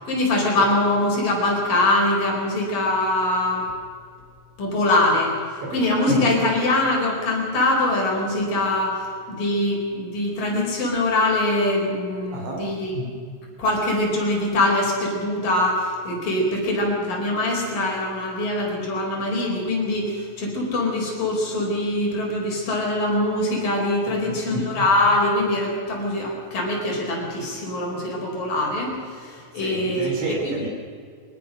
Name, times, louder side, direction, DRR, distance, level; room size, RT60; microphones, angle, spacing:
voice 1, 0.1-3.7 4.6-5.3 5.7-9.0 9.3-13.0 13.6-28.9 29.2-30.1, left 1 dB, 45° left, -1 dB, 6.0 m, -23 dB
voice 2, 5.6-6.0 12.3-12.7 24.0-24.4 29.5-30.7, right 2 dB, 65° right, 1 dB, 5.6 m, -31 dB
23.5 x 19.5 x 6.5 m, 2.1 s
omnidirectional pair, 5.6 m